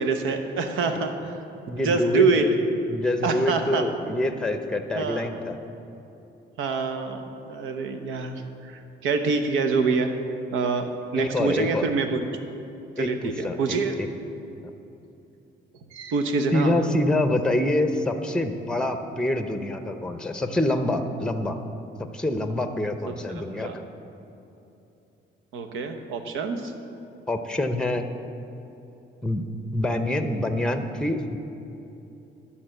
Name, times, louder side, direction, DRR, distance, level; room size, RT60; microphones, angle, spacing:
voice 1, 0.0-1.3 1.8-2.5 3.2-3.9 4.9-5.3 6.6-8.3 8.6-10.1 10.5-12.2 13.0-13.9 15.9-16.7 23.1-23.2 23.6-23.7 25.5-26.7, right 4 dB, 90° right, 7 dB, 0.8 m, -26 dB
voice 2, 1.7-2.5 2.9-5.6 11.2-11.9 13.0-14.1 16.5-21.6 22.1-23.8 27.3-28.1 29.2-29.4 29.7-31.4, left 1 dB, 5° left, 7 dB, 0.7 m, -26 dB
11.0 x 4.3 x 7.8 m, 2.8 s
cardioid pair, 90°, 20 cm